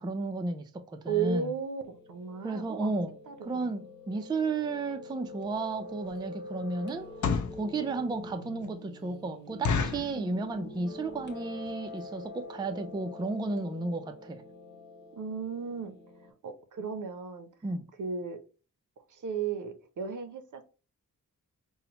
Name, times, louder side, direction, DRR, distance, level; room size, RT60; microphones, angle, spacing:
voice 1, 0.0-1.5 2.4-3.1 3.5-7.1 7.6-14.4 17.6-17.8, right 3 dB, 15° right, 0.3 m, -33 dB
voice 2, 1.1-3.7 10.1-10.3 15.1-15.9 16.2-17.5 18.0-18.4 19.1-20.6, right 6 dB, 70° right, 0.6 m, -35 dB
Piano, 1.9-16.3, left 2 dB, 35° left, 0.9 m, -46 dB
sound 1, 5.4-5.6 6.1-6.3 7.0-7.6 8.2-8.3 8.6-8.7 9.0-9.1 9.6-10.2 10.7-11.0 11.3-11.4 11.6-11.9 12.4-12.5 12.7-12.9 13.3-13.4 13.6-13.7, left 5 dB, 65° left, 0.5 m, -30 dB
5.5 x 2.0 x 2.8 m
wide cardioid pair, 155°, 32 cm